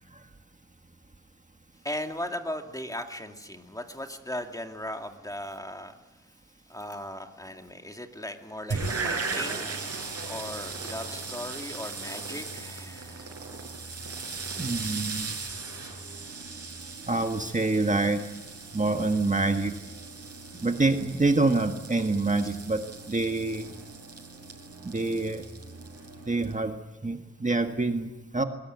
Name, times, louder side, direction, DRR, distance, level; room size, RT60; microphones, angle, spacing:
voice 1, 1.8-5.9 6.7-9.9 10.2-13.3, left 1 dB, 10° left, 5 dB, 2.3 m, -37 dB
sound 1, 8.7-26.6, right 4 dB, 50° right, 6.1 m, -38 dB
voice 2, 14.6-15.3 17.1-18.2 18.7-19.7 20.6-22.8 23.1-23.7 24.8-25.4 26.3-28.4, right 3 dB, 25° right, 5 dB, 1.7 m, -26 dB
21.5 x 21.0 x 9.4 m, 1.1 s
wide cardioid pair, 80°, 30 cm